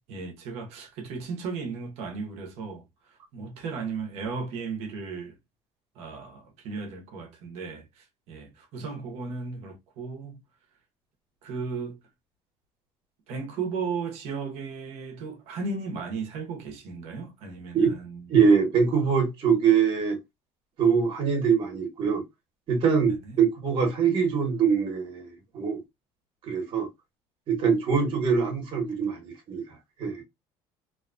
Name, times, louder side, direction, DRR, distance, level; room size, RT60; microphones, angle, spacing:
voice 1, 0.1-2.8 3.1-5.3 5.9-10.4 11.4-12.0 13.3-18.3 23.1-23.4, right 4 dB, 70° right, 1.0 m, -35 dB
voice 2, 18.3-20.2 20.8-22.2 22.7-25.8 26.4-26.9 27.5-29.6 30.0-30.2, right 6 dB, 50° right, 1.2 m, -23 dB
2.8 x 2.4 x 2.5 m
cardioid pair, 140°, 11 cm